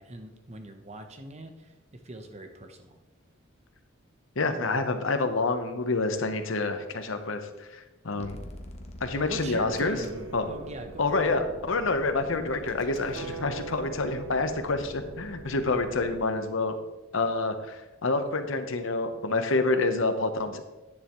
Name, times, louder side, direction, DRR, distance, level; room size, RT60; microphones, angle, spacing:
voice 1, 0.0-3.0 9.2-11.4, right 1 dB, 35° right, 6 dB, 0.9 m, -41 dB
voice 2, 4.4-8.4 9.0-10.0 10.3-10.4 11.0-16.7 17.1-20.6, left 3 dB, 65° left, 8 dB, 0.9 m, -28 dB
sound 1, 8.2-16.2, left 1 dB, 30° left, 1.0 m, -46 dB
sound 2, 9.2-16.9, right 5 dB, 65° right, 0.7 m, -44 dB
10.5 x 9.7 x 3.1 m, 1.1 s
head